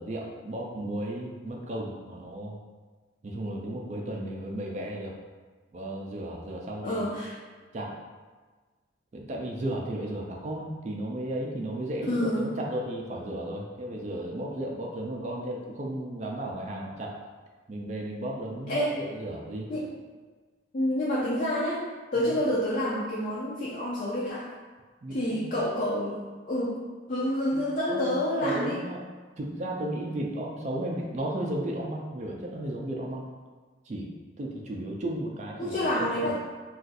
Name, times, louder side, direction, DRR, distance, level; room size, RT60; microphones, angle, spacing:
voice 1, 0.0-2.6 3.2-5.1 5.7-7.1 7.7-7.9 9.1-17.2 17.7-19.7 22.2-22.3 25.0-25.5 27.5-28.1 28.4-29.0 29.4-33.3 33.9-36.3, right 1 dB, 35° right, -1 dB, 0.3 m, -34 dB
voice 2, 6.8-7.3 12.1-12.5 18.7-18.9 19.7-19.9 20.7-21.8 22.1-24.5 25.1-26.8 27.1-28.8 35.6-36.3, left 1 dB, 40° left, -6 dB, 0.4 m, -28 dB
2.5 x 2.3 x 3.9 m, 1.4 s
head